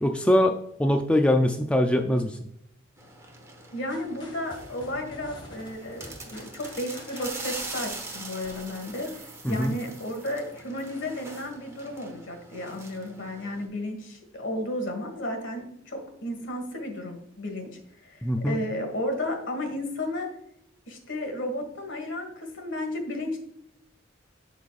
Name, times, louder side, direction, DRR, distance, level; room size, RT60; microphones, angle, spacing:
voice 1, 0.0-2.4 9.4-9.7 18.2-18.6, left 1 dB, 5° left, 4 dB, 0.3 m, -23 dB
sound 1, 3.0-13.7, right 3 dB, 15° right, 1.0 m, -42 dB
voice 2, 3.7-20.3 20.9-23.4, left 1 dB, 65° left, 5 dB, 1.7 m, -33 dB
sound 2, 3.9-9.2, left 1 dB, 25° left, 1.5 m, -48 dB
11.5 x 4.1 x 2.4 m, 0.74 s
head